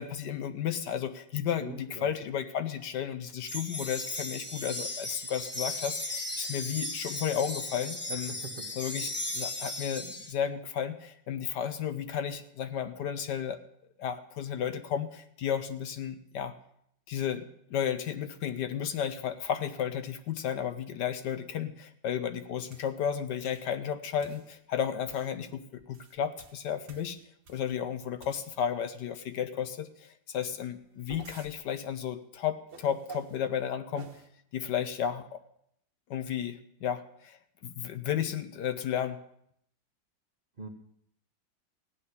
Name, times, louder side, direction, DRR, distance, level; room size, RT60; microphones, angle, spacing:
voice 1, 0.0-8.3 8.8-13.6 14.0-16.5 17.1-27.2 27.5-34.1 34.5-35.4 36.1-37.4 37.6-39.2, left 8 dB, 70° left, 9 dB, 1.3 m, -33 dB
voice 2, 1.6-2.1 8.1-8.7 40.6-40.7, right 1 dB, 35° right, 3 dB, 1.1 m, -43 dB
sound 1, 3.5-10.3, left 1 dB, 10° left, 0.7 m, -36 dB
sound 2, 22.7-22.9 23.4-23.7 24.2-24.5 25.1-25.3 25.8-27.8 28.2-28.7 30.6-31.5 32.7-33.4 33.9-34.3, right 4 dB, 60° right, 1.8 m, -50 dB
15.5 x 6.2 x 9.8 m, 0.71 s
omnidirectional pair, 2.0 m